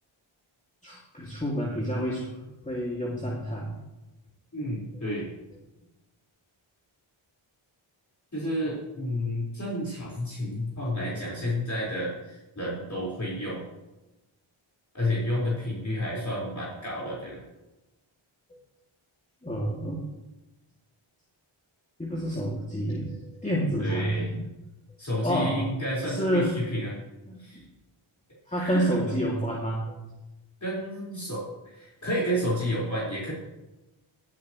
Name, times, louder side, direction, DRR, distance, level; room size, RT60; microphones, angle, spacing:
voice 1, 0.8-2.3 2.6-3.7 19.4-20.0 22.0-24.4 25.2-25.6 26.0-26.6 27.3-27.6 28.5-29.8, equal, 15° left, -5 dB, 2.6 m, -29 dB
voice 2, 4.5-5.3 8.3-13.6 14.9-17.4 23.8-24.3 25.0-27.0 27.4-27.6 28.5-29.2 30.6-33.3, equal, 35° left, -7 dB, 5.0 m, -31 dB
16.5 x 11.0 x 3.2 m, 1.0 s
cardioid pair, 55°, 50 cm